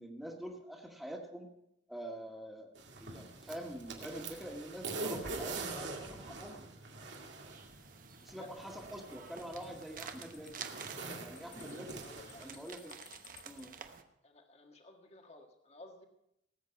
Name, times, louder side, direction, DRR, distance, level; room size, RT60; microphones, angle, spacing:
voice 1, 0.0-1.5 1.9-2.7 3.0-6.7 8.2-10.5 11.2-12.1 12.4-13.0 13.4-13.7, equal, ahead, 0 dB, 1.7 m, -46 dB
sound 1, 2.8-12.6, right 3 dB, 75° right, 2.2 m, -44 dB
sound 2, 7.4-14.0, right 7 dB, 50° right, 1.0 m, -51 dB
sound 3, 8.1-13.6, left 9 dB, 75° left, 2.9 m, -59 dB
voice 2, 12.0-12.5 14.2-16.1, left 2 dB, 35° left, 3 dB, 1.7 m, -55 dB
18.5 x 8.2 x 5.9 m, 0.80 s
head